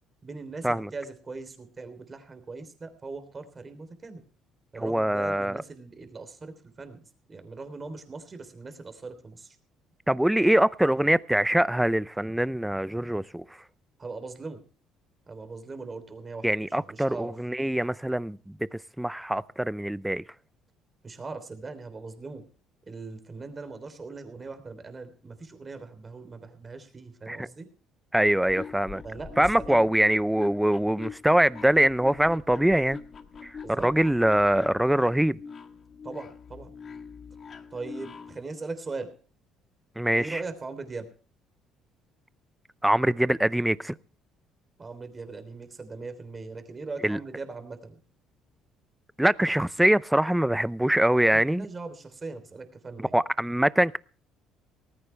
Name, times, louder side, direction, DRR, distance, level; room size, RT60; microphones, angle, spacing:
voice 1, 0.2-4.2 4.7-7.0 7.3-9.6 14.0-14.6 15.3-16.5 16.8-17.3 21.0-22.4 22.9-27.7 29.0-29.9 33.6-33.9 36.0-36.7 37.7-39.1 40.1-41.1 44.8-48.0 51.1-53.2, right 3 dB, 25° right, 3.3 m, -40 dB
voice 2, 4.8-5.6 10.1-13.4 16.4-20.2 27.3-27.5 28.1-29.0 29.4-33.0 33.4-35.4 40.0-40.4 42.8-44.0 47.0-47.2 49.2-51.7 53.1-54.0, right 1 dB, 5° right, 0.5 m, -23 dB
sound 1, 28.2-38.4, left 5 dB, 35° left, 1.7 m, -44 dB
18.5 x 15.0 x 3.3 m
cardioid pair, 115°, 0 cm